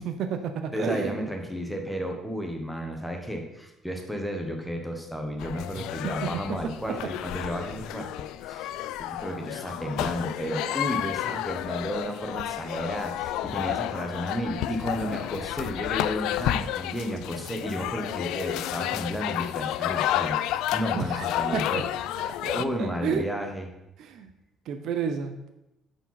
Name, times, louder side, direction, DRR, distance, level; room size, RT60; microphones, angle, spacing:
voice 1, 0.0-1.2 5.7-6.3 20.9-21.8 22.2-23.3 24.0-24.3 24.7-25.5, right 6 dB, 55° right, 8 dB, 0.7 m, -32 dB
voice 2, 0.7-21.9 22.5-23.7, equal, ahead, 3 dB, 1.1 m, -33 dB
sound 1, 5.4-22.6, left 13 dB, 85° left, 0.4 m, -31 dB
9.5 x 5.2 x 5.8 m, 0.89 s
cardioid pair, 180°, 0 cm